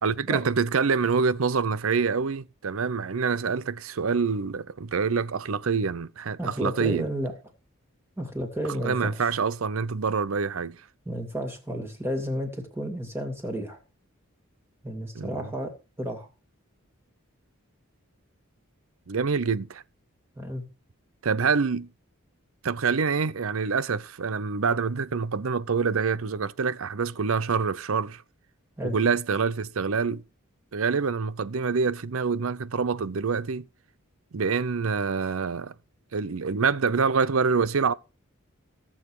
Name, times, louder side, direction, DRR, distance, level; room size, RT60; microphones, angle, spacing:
voice 1, 0.0-7.1 8.8-10.8 15.2-15.5 19.1-19.8 21.2-21.9 22.6-28.2 28.8-30.2 30.7-33.6 34.3-35.7 36.1-37.9, right 5 dB, 75° right, 0.6 m, -26 dB
voice 2, 6.4-7.3 8.2-9.1 11.1-13.8 14.8-15.7 16.0-16.3 20.4-20.6 28.8-28.9, equal, 10° right, 2.5 m, -32 dB
16.0 x 7.3 x 4.8 m
head